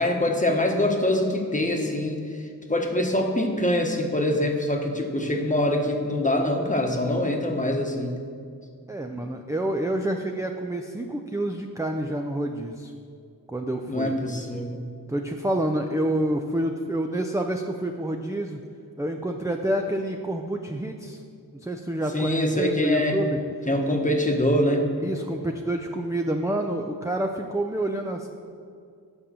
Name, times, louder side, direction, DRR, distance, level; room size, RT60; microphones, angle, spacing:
voice 1, 0.0-2.2 2.7-8.1 13.9-14.8 22.1-23.2 23.7-24.9, left 1 dB, 20° left, 2 dB, 1.2 m, -24 dB
voice 2, 8.9-12.9 13.5-14.2 15.1-18.6 19.0-21.2 21.6-23.4 25.0-28.3, right 1 dB, 10° right, 3 dB, 0.5 m, -28 dB
10.0 x 5.4 x 6.9 m, 2.3 s
wide cardioid pair, 85°, 39 cm